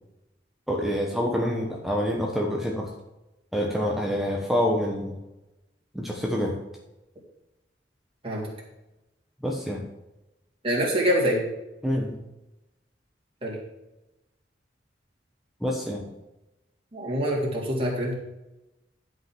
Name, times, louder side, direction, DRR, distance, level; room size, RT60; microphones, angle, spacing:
voice 1, 0.7-2.9 3.5-5.2 5.9-6.6 9.4-9.8 11.8-12.2 15.6-16.0, equal, ahead, -1 dB, 1.1 m, -27 dB
voice 2, 10.6-11.4 13.4-13.6 16.9-18.1, equal, 30° right, -3 dB, 3.0 m, -25 dB
11.5 x 5.4 x 6.1 m, 0.97 s
head